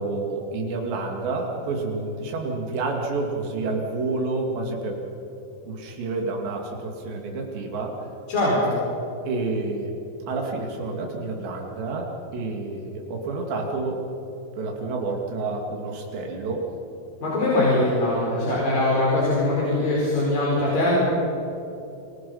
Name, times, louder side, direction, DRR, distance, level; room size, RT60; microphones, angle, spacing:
voice 1, 0.0-5.0 5.7-7.9 9.3-9.9 10.3-14.0 14.6-16.7, right 3 dB, 90° right, 1 dB, 4.8 m, -29 dB
voice 2, 8.3-8.8 17.2-21.0, left 1 dB, 55° left, -6 dB, 6.4 m, -22 dB
29.5 x 24.0 x 5.7 m, 2.9 s
omnidirectional pair, 4.9 m